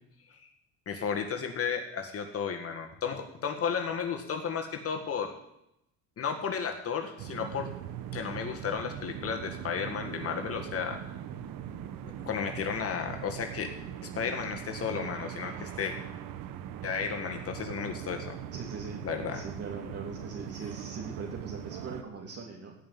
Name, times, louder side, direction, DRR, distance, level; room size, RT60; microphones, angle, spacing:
voice 1, 0.9-5.3 6.2-7.7 8.1-11.0 12.2-13.7 14.0-15.9 16.8-18.4 19.0-19.4, left 6 dB, 45° left, 4 dB, 1.9 m, -33 dB
sound 1, 7.2-22.0, right 10 dB, 75° right, 1.2 m, -41 dB
voice 2, 18.5-19.0 19.3-22.7, right 4 dB, 45° right, -1 dB, 2.9 m, -40 dB
17.0 x 5.7 x 9.4 m, 0.81 s
cardioid pair, 115°, 34 cm